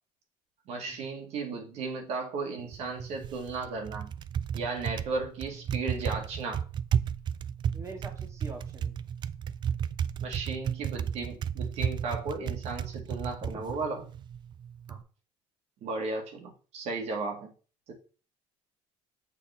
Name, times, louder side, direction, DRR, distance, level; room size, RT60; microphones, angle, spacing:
voice 1, 0.7-4.1 4.5-6.6 10.2-14.1 15.8-17.5 17.9-18.0, right 3 dB, 65° right, 2 dB, 1.9 m, -35 dB
Typing, 2.6-15.0, right 8 dB, 40° right, 0.3 m, -34 dB
voice 2, 7.7-9.0 14.9-15.0, right 2 dB, 25° right, 3 dB, 1.7 m, -44 dB
6.9 x 4.0 x 3.5 m, 0.36 s
cardioid pair, 110°, 12 cm